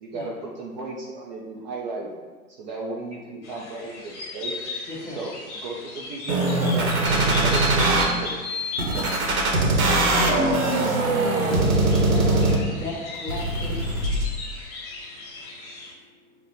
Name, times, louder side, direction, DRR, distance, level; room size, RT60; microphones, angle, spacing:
voice 1, 0.0-2.1 2.5-4.5 5.1-8.3, right 3 dB, 35° right, -3 dB, 0.4 m, -34 dB
sound 1, 3.4-15.9, left 3 dB, 55° left, 0.9 m, -37 dB
voice 2, 4.9-5.2 11.4-11.6 12.1-13.9, left 2 dB, 5° left, -7 dB, 0.9 m, -35 dB
sound 2, 6.3-8.0 8.8-12.8 13.3-14.3, right 2 dB, 85° right, 0.9 m, -21 dB
voice 3, 15.0-16.5, left 2 dB, 35° left, -2 dB, 0.5 m, -60 dB
5.3 x 2.1 x 2.5 m, 1.4 s
hypercardioid pair, 115°, 42 cm